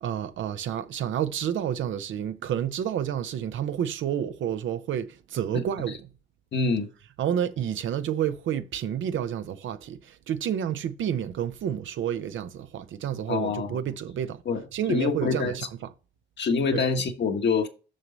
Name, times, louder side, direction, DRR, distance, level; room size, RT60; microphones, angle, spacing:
voice 1, 0.0-6.0 7.2-14.4 14.7-15.7 16.7-16.8, right 9 dB, 85° right, 0.7 m, -29 dB
voice 2, 6.5-6.9 13.3-13.8 14.4-14.6 14.9-15.5 16.4-17.7, left 4 dB, 65° left, 1.4 m, -25 dB
6.4 x 6.1 x 4.0 m
cardioid pair, 70°, 19 cm